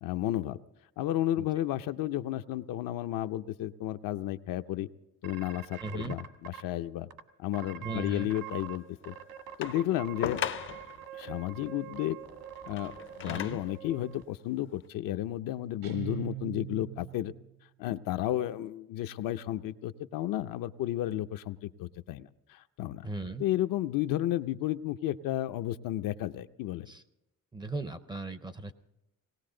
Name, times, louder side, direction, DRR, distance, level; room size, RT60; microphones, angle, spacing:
voice 1, 0.0-0.6 1.0-4.9 5.2-7.1 7.4-9.1 9.6-10.4 11.1-12.2 12.6-12.9 13.2-17.3 17.8-23.1 23.4-26.9, left 13 dB, 75° left, 9 dB, 0.6 m, -32 dB
sound 1, 5.2-6.6 7.1-7.2 7.5-8.8 9.0-14.2, right 10 dB, 70° right, 1.4 m, -45 dB
voice 2, 5.8-6.2 7.8-8.3 13.2-13.6 23.0-23.4 26.9-27.0 27.5-28.7, right 3 dB, 15° right, 11 dB, 0.5 m, -37 dB
sound 2, 9.6-11.0 12.6-13.8 14.6-14.7, left 9 dB, 35° left, 0.5 m, -37 dB
Guitar, 15.8-17.5, right 15 dB, 85° right, 2.1 m, -40 dB
19.5 x 18.0 x 3.8 m, 0.92 s
cardioid pair, 160°, 33 cm